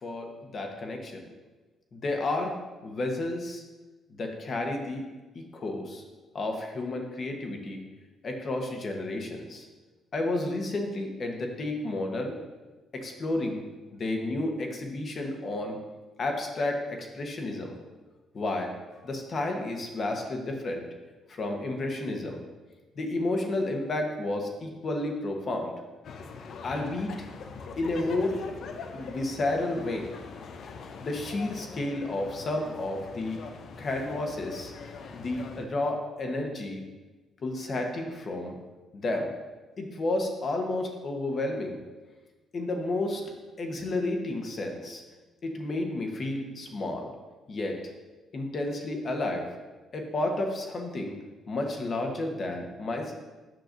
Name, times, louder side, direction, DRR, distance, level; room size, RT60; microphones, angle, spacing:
voice 1, 0.0-1.3 1.9-2.6 2.8-3.6 4.2-5.1 5.3-6.0 6.3-7.8 8.2-9.7 10.1-12.3 12.9-13.6 13.9-15.8 16.2-17.8 18.3-18.7 19.0-20.8 21.3-22.4 23.0-25.7 26.6-27.3 27.8-28.4 28.9-30.1 31.0-33.4 33.8-34.7 35.1-36.8 37.4-38.5 38.9-39.3 39.8-41.8 42.5-43.3 43.6-45.0 45.4-47.1 47.5-47.8 48.3-49.5 49.9-51.2 51.5-53.1, left 2 dB, 45° left, 3 dB, 1.0 m, -31 dB
sound 1, 26.0-35.7, left 4 dB, 65° left, 0.5 m, -42 dB
7.6 x 5.8 x 2.6 m, 1.2 s
cardioid pair, 90°, 0 cm